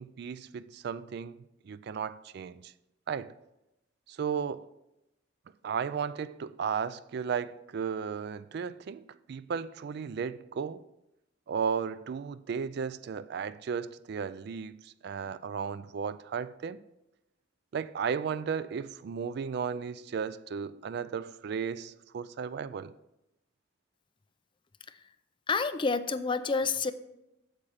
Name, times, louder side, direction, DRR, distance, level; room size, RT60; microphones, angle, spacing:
voice 1, 0.0-1.4 1.6-2.7 3.1-3.3 4.1-4.7 5.6-10.8 11.5-16.8 17.7-22.9, right 6 dB, 55° right, 0.3 m, -35 dB
voice 2, 25.5-26.9, left 4 dB, 25° left, 0.4 m, -29 dB
8.7 x 7.4 x 4.9 m
head